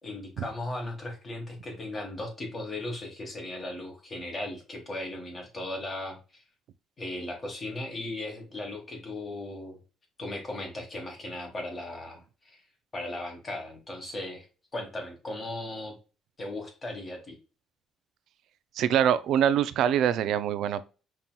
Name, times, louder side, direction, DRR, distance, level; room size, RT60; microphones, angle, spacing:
voice 1, 0.0-6.4 7.0-9.8 10.2-12.6 12.9-14.4 14.7-15.9 16.4-17.4, left 1 dB, 25° left, 1.6 m, -37 dB
voice 2, 18.8-20.8, right 9 dB, 65° right, 0.3 m, -24 dB
5.2 x 2.9 x 2.2 m
cardioid pair, 155°, 0 cm